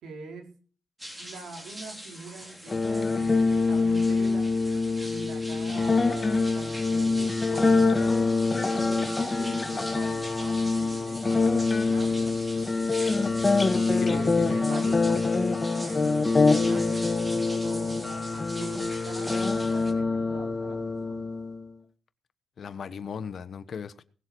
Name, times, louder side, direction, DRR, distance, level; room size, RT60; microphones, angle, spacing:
voice 1, 0.0-0.5 1.2-4.5 5.1-8.2 8.5-12.4 13.7-21.3, right 4 dB, 80° right, 4.2 m, -43 dB
sound 1, 1.0-19.9, equal, 10° right, 3.5 m, -42 dB
sound 2, 2.7-21.7, left 3 dB, 25° left, 1.7 m, -25 dB
voice 2, 13.9-14.6 22.6-24.0, left 6 dB, 55° left, 1.2 m, -37 dB
19.5 x 7.3 x 6.3 m
cardioid pair, 110°, 0 cm